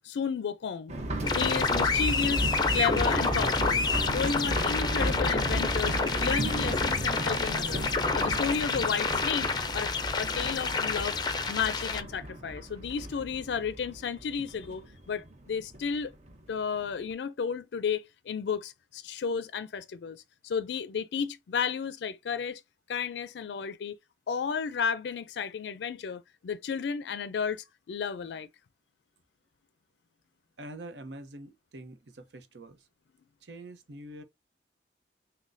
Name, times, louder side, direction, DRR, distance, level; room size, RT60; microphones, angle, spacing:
voice 1, 0.0-11.2 11.5-16.1 16.5-20.2 20.4-22.6 22.9-23.9 24.3-28.5, left 6 dB, 80° left, 0.4 m, -33 dB
sound 1, 0.9-16.4 16.6-16.7 17.1-17.2, right 1 dB, 40° right, 0.8 m, -34 dB
sound 2, 1.2-12.0, left 4 dB, 25° left, 0.5 m, -29 dB
voice 2, 30.6-32.9 33.4-34.2, right 1 dB, 85° right, 0.7 m, -45 dB
6.1 x 2.2 x 2.5 m
head